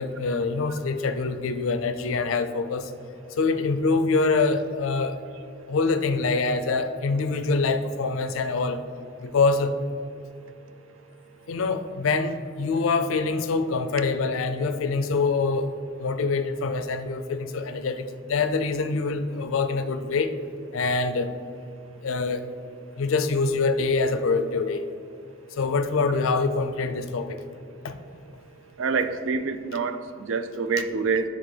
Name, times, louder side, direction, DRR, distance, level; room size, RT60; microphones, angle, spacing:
voice 1, 0.0-2.9 3.4-5.2 5.7-8.8 9.2-9.7 11.5-15.7 16.0-18.0 18.3-20.3 20.7-21.3 22.0-22.4 23.0-24.8 25.6-27.4 27.8-28.0, left 4 dB, 85° left, 9 dB, 0.4 m, -25 dB
voice 2, 28.8-30.0 30.2-31.2, right 5 dB, 75° right, 10 dB, 0.4 m, -26 dB
9.6 x 3.7 x 3.3 m, 2.5 s
head